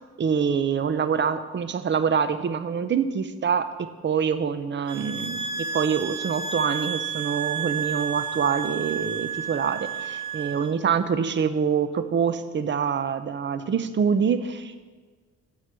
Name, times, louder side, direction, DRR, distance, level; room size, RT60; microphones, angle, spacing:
voice 1, 0.2-3.7 4.0-14.8, right 6 dB, 40° right, 11 dB, 0.8 m, -25 dB
sound 1, 4.9-10.7, right 6 dB, 80° right, 1.0 m, -31 dB
8.4 x 7.3 x 6.1 m, 1.4 s
cardioid pair, 90°, 30 cm